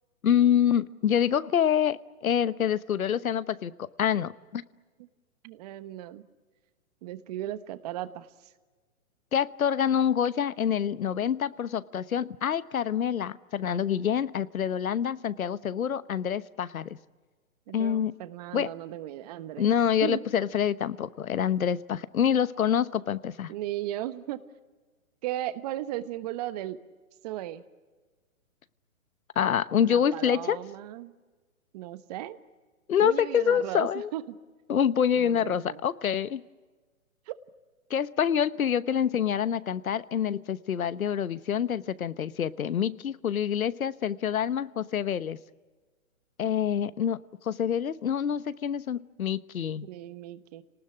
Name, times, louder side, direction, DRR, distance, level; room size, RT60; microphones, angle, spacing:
voice 1, 0.2-4.6 9.3-17.0 17.7-18.1 18.5-18.7 19.6-23.5 29.4-30.6 32.9-34.1 34.7-36.4 37.9-45.4 46.4-49.9, left 8 dB, 85° left, 17 dB, 1.1 m, -26 dB
voice 2, 5.4-6.2 7.0-8.5 17.7-19.7 20.0-20.2 23.5-24.4 25.2-26.8 27.2-27.6 29.8-31.1 31.7-32.4 33.0-34.2 35.1-35.8 37.3-37.4 49.3-49.4 49.8-50.6, right 14 dB, 30° right, 13 dB, 1.1 m, -36 dB
28.0 x 19.5 x 10.0 m, 1.4 s
hypercardioid pair, 150°, 41 cm